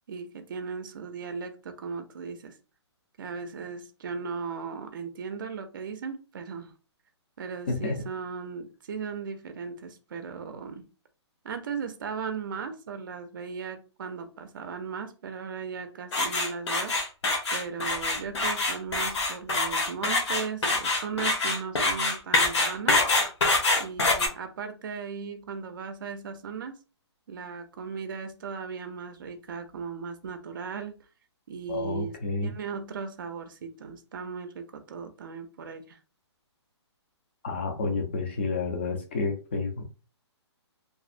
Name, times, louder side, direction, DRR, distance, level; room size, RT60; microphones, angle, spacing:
voice 1, 0.1-2.5 3.2-6.7 7.4-10.9 11.4-17.0 17.5-23.0 23.8-26.8 27.3-31.0 31.5-36.0, right 5 dB, 45° right, 0.4 m, -37 dB
voice 2, 7.7-8.0 31.7-32.5 37.4-39.8, left 3 dB, 25° left, 0.3 m, -30 dB
sound 1, 16.1-24.3, left 2 dB, 70° left, 0.8 m, -25 dB
2.5 x 2.0 x 2.4 m
hypercardioid pair, 170°, 15 cm